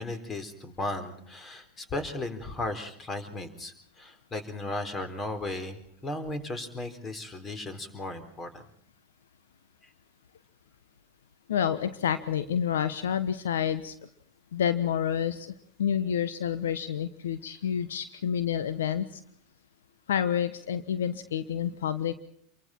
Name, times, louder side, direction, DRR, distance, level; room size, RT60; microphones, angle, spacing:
voice 1, 0.0-8.6, left 2 dB, 25° left, 10 dB, 4.1 m, -36 dB
voice 2, 11.5-13.9 14.5-19.2 20.1-22.1, left 9 dB, 75° left, 12 dB, 1.1 m, -29 dB
28.0 x 23.5 x 4.5 m, 0.64 s
hypercardioid pair, 90°, 0 cm